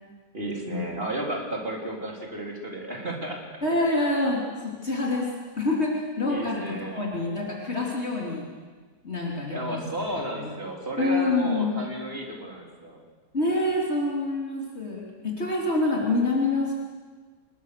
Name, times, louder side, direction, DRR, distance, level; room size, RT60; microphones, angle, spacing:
voice 1, 0.3-3.4 6.3-7.1 9.5-13.0, right 1 dB, 35° right, 0 dB, 3.9 m, -33 dB
voice 2, 3.6-8.4 9.0-9.8 10.4-10.5 11.0-11.8 13.3-16.7, left 2 dB, 40° left, -3 dB, 3.3 m, -26 dB
26.0 x 21.0 x 6.7 m, 1.5 s
omnidirectional pair, 1.7 m